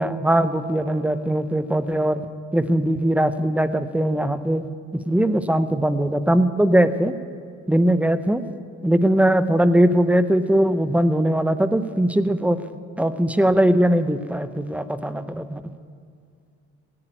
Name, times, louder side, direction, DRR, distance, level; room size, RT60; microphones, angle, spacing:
voice 1, 0.0-4.7 5.1-7.1 7.7-8.4 8.8-12.6 13.0-15.6, right 1 dB, 5° right, 11 dB, 0.8 m, -20 dB
16.5 x 8.7 x 9.1 m, 2.3 s
cardioid pair, 90°, 30 cm